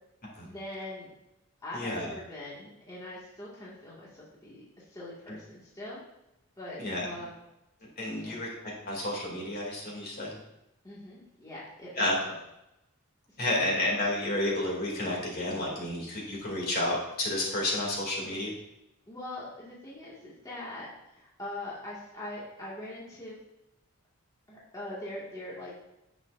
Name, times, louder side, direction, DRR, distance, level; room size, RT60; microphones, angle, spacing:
voice 1, 0.4-1.2 1.6-6.0 6.6-7.4 8.2-8.4 10.8-12.3 13.3-13.6 19.1-23.4 24.5-25.8, left 1 dB, 20° left, -7 dB, 2.0 m, -42 dB
voice 2, 1.7-2.1 6.8-7.1 8.0-8.5 8.9-10.3 12.0-12.1 13.4-18.5, left 1 dB, 50° left, -2 dB, 2.7 m, -30 dB
10.5 x 8.2 x 2.6 m, 0.88 s
head